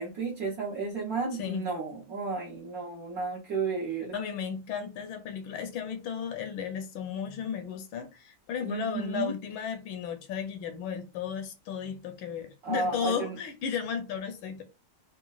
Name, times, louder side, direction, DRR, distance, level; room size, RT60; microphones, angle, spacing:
voice 1, 0.0-4.1 8.6-9.3 12.6-13.3, right 4 dB, 60° right, 1.0 m, -33 dB
voice 2, 1.3-1.7 4.1-14.6, left 7 dB, 75° left, 1.3 m, -34 dB
4.0 x 2.2 x 2.3 m
omnidirectional pair, 2.3 m